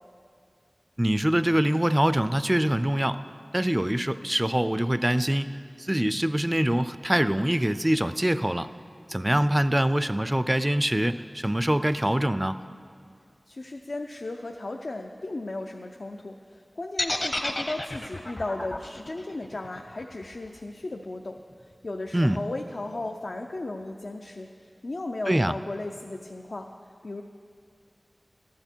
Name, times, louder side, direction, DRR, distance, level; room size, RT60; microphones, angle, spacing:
voice 1, 1.0-3.2 3.5-5.5 5.8-8.7 9.1-12.6 22.1-22.4 25.3-25.5, right 1 dB, 20° right, 13 dB, 0.4 m, -24 dB
voice 2, 13.5-26.7 27.0-27.2, left 2 dB, 70° left, 3 dB, 0.5 m, -35 dB
sound 1, 17.0-21.0, left 1 dB, 45° left, 0.8 m, -31 dB
14.5 x 10.5 x 4.5 m, 2.3 s
wide cardioid pair, 50°, 0 cm